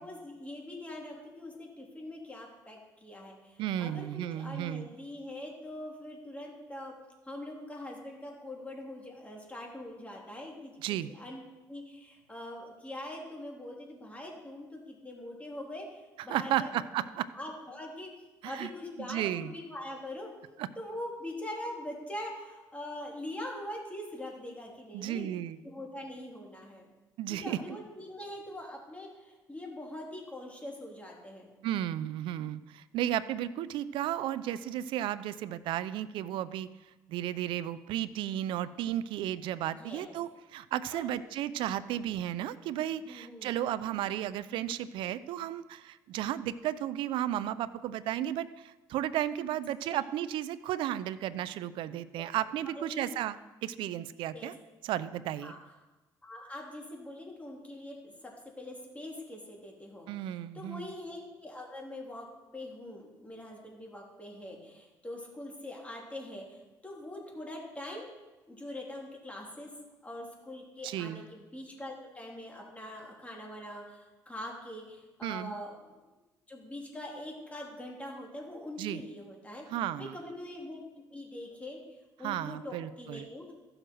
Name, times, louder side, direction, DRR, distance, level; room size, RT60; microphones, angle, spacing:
voice 1, 0.0-6.9 7.3-11.4 11.7-16.7 17.3-18.1 18.4-20.3 20.8-25.3 25.6-26.9 27.3-31.5 39.7-40.1 40.9-41.1 43.0-43.5 52.1-52.2 52.7-53.1 54.3-54.5 55.4-55.6 56.2-62.3 62.5-68.1 68.5-69.7 70.0-76.0 76.5-79.6 80.0-80.8 81.1-83.5, left 1 dB, 15° left, -1 dB, 3.2 m, -43 dB
voice 2, 3.6-4.9 10.8-11.1 16.3-17.3 18.4-18.7 19.0-19.5 20.6-20.7 24.9-25.6 27.2-27.6 31.6-36.7 37.1-54.5 54.8-55.6 60.1-60.9 70.8-71.2 75.2-75.5 78.8-79.0 79.7-80.1 82.2-83.3, right 12 dB, 75° right, 15 dB, 0.5 m, -34 dB
15.0 x 6.5 x 4.6 m, 1.1 s
supercardioid pair, 75°, 9 cm